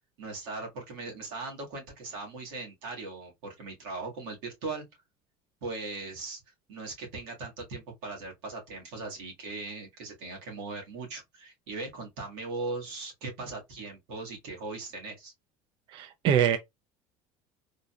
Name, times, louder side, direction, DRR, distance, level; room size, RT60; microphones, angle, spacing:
voice 1, 0.2-4.9 5.6-6.4 6.7-15.3, right 3 dB, 85° right, 1.8 m, -39 dB
voice 2, 15.9-16.6, right 9 dB, 45° right, 0.4 m, -24 dB
3.7 x 2.7 x 2.3 m
cardioid pair, 150°, 12 cm